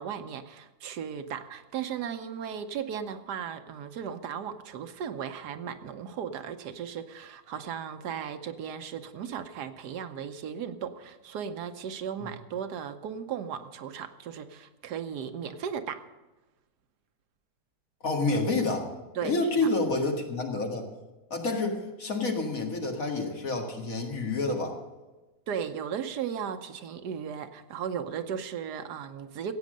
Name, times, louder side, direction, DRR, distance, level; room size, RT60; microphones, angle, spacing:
voice 1, 0.0-16.0 19.1-19.3 25.5-29.5, right 8 dB, 85° right, 9 dB, 1.4 m, -36 dB
voice 2, 18.0-18.9 19.2-20.9 21.3-24.8, left 3 dB, 60° left, 2 dB, 2.2 m, -28 dB
15.5 x 8.6 x 6.5 m, 1.1 s
omnidirectional pair, 1.7 m